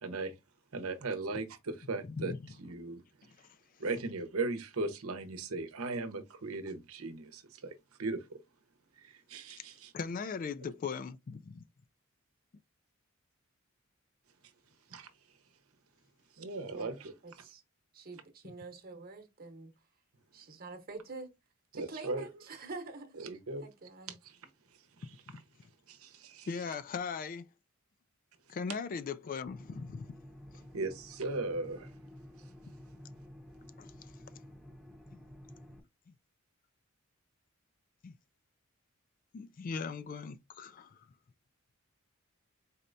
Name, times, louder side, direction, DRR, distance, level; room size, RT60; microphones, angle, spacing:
voice 1, 0.0-0.3 0.7-2.3 2.6-3.0 3.8-8.4 9.0-9.9 14.9-15.1 16.4-17.1 21.7-22.2 23.2-23.6 25.0-25.1 25.9-26.5 30.7-31.9, right 3 dB, 85° right, 0.8 m, -37 dB
voice 2, 2.1-2.4 9.6-9.7 9.9-11.6 25.0-25.4 26.5-27.5 28.5-30.1 33.8-33.9 35.1-35.2 38.0-38.1 39.3-41.0, left 5 dB, 40° left, 0.3 m, -39 dB
voice 3, 16.7-17.6 17.9-19.9 20.3-21.3 21.7-23.2 23.6-24.2, right 3 dB, 45° right, 1.0 m, -46 dB
sound 1, 29.5-35.8, equal, ahead, 0.8 m, -52 dB
4.2 x 3.2 x 2.6 m
head